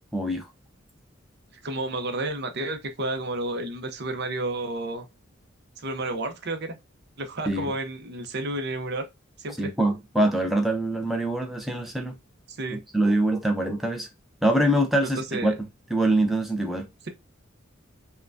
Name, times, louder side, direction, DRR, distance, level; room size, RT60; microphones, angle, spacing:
voice 1, 0.1-0.5 7.5-7.7 9.5-12.2 12.7-14.1 14.4-15.5 15.9-16.9, right 1 dB, ahead, 0.6 m, -24 dB
voice 2, 1.6-5.1 5.8-6.8 7.2-9.0 9.4-9.5 12.5-12.8 15.3-15.5, right 2 dB, 55° right, 0.8 m, -31 dB
5.6 x 2.2 x 2.5 m
head